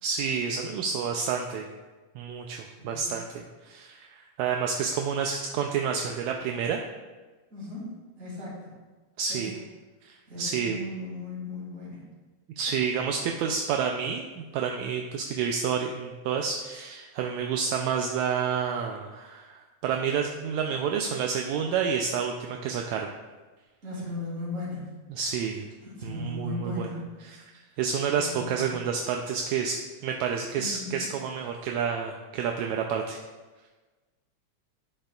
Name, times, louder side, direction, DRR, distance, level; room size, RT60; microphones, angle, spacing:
voice 1, 0.0-1.7 2.2-6.8 9.2-9.5 10.0-10.8 12.6-23.1 25.1-25.7 26.0-26.9 27.4-27.5 27.8-29.8 30.0-33.2, right 6 dB, 80° right, 2 dB, 1.8 m, -29 dB
voice 2, 2.8-3.3 7.5-8.7 9.3-9.5 10.3-12.0 23.8-24.9 25.8-27.0 28.1-28.7 30.6-31.1, left 2 dB, 25° right, -5 dB, 2.6 m, -37 dB
11.5 x 6.6 x 2.3 m, 1.3 s
omnidirectional pair, 3.5 m